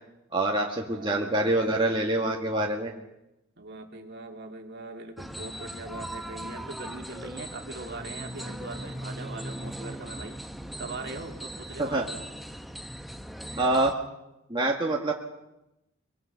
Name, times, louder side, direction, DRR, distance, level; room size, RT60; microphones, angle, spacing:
voice 1, 0.3-2.9 11.8-12.1 13.6-13.9 14.5-15.1, right 2 dB, 20° right, -1 dB, 1.7 m, -25 dB
voice 2, 0.9-2.3 3.6-10.4 10.8-12.1, right 2 dB, 50° right, 3 dB, 2.5 m, -41 dB
sound 1, 5.2-13.9, equal, ahead, 0.8 m, -39 dB
23.5 x 23.5 x 5.9 m, 0.90 s
head